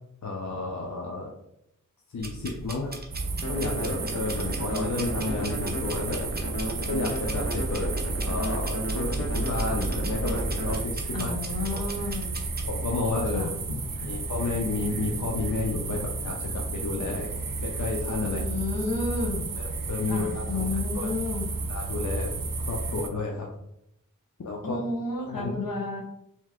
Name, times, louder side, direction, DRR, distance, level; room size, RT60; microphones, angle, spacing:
voice 1, 0.2-1.3 2.1-2.9 3.5-6.2 6.9-11.3 11.7-11.8 12.7-13.5 14.0-17.3 17.6-18.4 19.9-20.7 20.9-21.1 21.7-22.3 22.7-23.5 24.4-24.8 25.2-25.5, left 3 dB, 60° left, -1 dB, 0.6 m, -31 dB
sound 1, 2.2-12.7, right 2 dB, 30° right, 0.7 m, -39 dB
sound 2, 3.1-23.1, right 3 dB, 75° right, 0.6 m, -32 dB
sound 3, 3.4-10.8, equal, 45° left, 1.0 m, -34 dB
voice 2, 11.1-12.3 13.3-13.8 18.2-19.5 20.1-21.5 24.6-26.0, left 3 dB, 85° left, -1 dB, 1.1 m, -31 dB
3.2 x 3.1 x 3.6 m, 0.79 s
wide cardioid pair, 45°, 34 cm